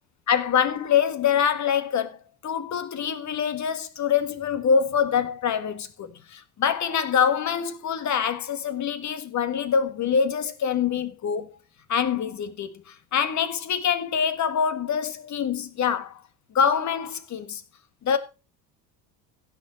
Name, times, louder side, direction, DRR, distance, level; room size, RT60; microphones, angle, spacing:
voice 1, 0.3-2.2 2.4-11.6 11.9-16.2 16.5-17.6 18.0-18.2, left 7 dB, 35° left, 1.7 m, -25 dB
16.0 x 6.7 x 4.0 m
hypercardioid pair, 75°, 47 cm